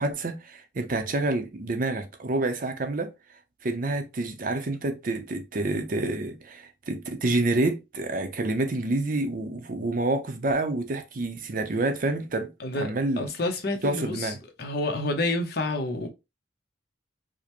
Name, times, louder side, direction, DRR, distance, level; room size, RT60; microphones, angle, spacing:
voice 1, 0.0-3.1 3.6-13.3 13.8-14.4, right 2 dB, 50° right, 0.6 m, -28 dB
voice 2, 13.2-14.3 14.6-16.1, left 2 dB, 60° left, 0.8 m, -28 dB
4.9 x 2.1 x 2.9 m
head